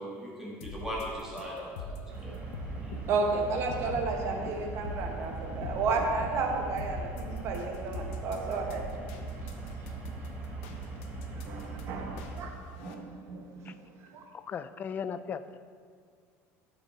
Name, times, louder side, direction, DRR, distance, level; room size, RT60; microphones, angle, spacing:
voice 1, 0.0-2.4 2.8-2.9, equal, 5° right, -5 dB, 1.9 m, -39 dB
sound 1, 0.6-12.9, left 3 dB, 85° left, 0.9 m, -43 dB
sound 2, 2.1-12.4, right 3 dB, 25° right, 1.8 m, -40 dB
voice 2, 3.1-8.8 11.5-13.8 14.1-14.2, right 3 dB, 45° right, 1 dB, 1.4 m, -32 dB
voice 3, 14.5-15.6, left 7 dB, 25° left, 13 dB, 0.3 m, -36 dB
12.5 x 5.4 x 4.5 m, 2.1 s
cardioid pair, 155°, 7 cm